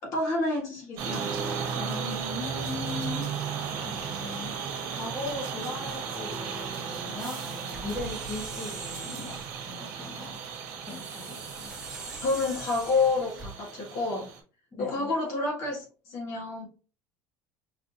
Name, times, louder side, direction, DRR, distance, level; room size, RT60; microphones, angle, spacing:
voice 1, 0.0-1.4 12.2-14.3 14.8-16.7, left 3 dB, 50° left, -1 dB, 1.5 m, -29 dB
sound 1, 1.0-14.4, right 6 dB, 65° right, 1.1 m, -35 dB
voice 2, 1.7-3.3 3.8-10.4 10.8-11.7 14.7-15.1, left 2 dB, 15° left, -2 dB, 1.0 m, -39 dB
sound 2, 7.2-9.6 10.9-13.5, right 3 dB, 10° right, 0.8 m, -43 dB
4.9 x 2.5 x 2.6 m, 0.36 s
cardioid pair, 155°, 6 cm